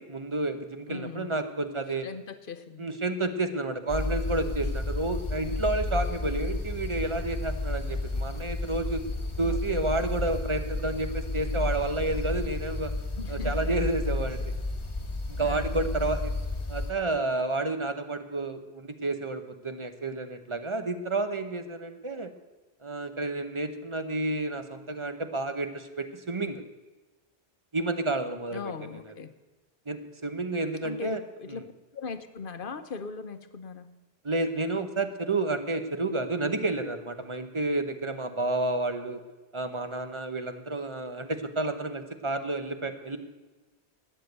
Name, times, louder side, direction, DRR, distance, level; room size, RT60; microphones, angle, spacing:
voice 1, 0.0-2.1 2.8-9.0 9.4-12.9 13.3-14.5 15.3-16.3 16.7-22.3 22.8-26.6 27.7-28.6 29.1-29.2 29.9-31.2 31.5-31.6 34.2-39.2 39.5-43.2, right 2 dB, 30° right, 9 dB, 1.0 m, -30 dB
voice 2, 0.9-1.3 2.0-2.9 9.4-9.9 13.2-13.7 15.4-16.1 28.5-29.3 30.8-33.9, left 5 dB, 60° left, 10 dB, 1.0 m, -40 dB
sound 1, 3.9-16.9, left 2 dB, 30° left, 1.5 m, -32 dB
13.0 x 9.0 x 8.1 m, 1.2 s
omnidirectional pair, 1.0 m